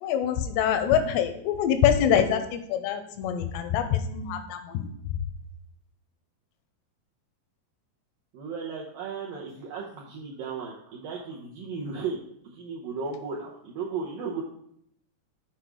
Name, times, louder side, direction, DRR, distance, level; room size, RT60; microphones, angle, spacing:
voice 1, 0.0-4.9, left 9 dB, 85° left, 8 dB, 2.7 m, -25 dB
voice 2, 8.3-12.2 12.4-14.4, right 5 dB, 75° right, -3 dB, 2.1 m, -35 dB
7.8 x 4.8 x 4.7 m, 0.70 s
omnidirectional pair, 5.1 m